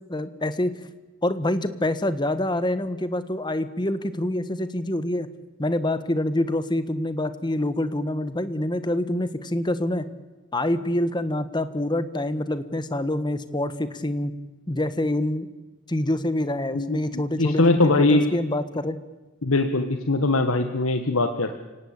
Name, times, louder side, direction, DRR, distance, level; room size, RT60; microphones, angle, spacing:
voice 1, 0.1-0.7 1.2-5.3 5.6-10.1 10.5-14.4 14.7-15.5 15.9-19.0, left 1 dB, 20° left, 12 dB, 1.4 m, -26 dB
voice 2, 16.7-18.3 19.4-21.5, left 2 dB, 90° left, 6 dB, 1.5 m, -21 dB
29.5 x 18.0 x 8.9 m, 1.2 s
head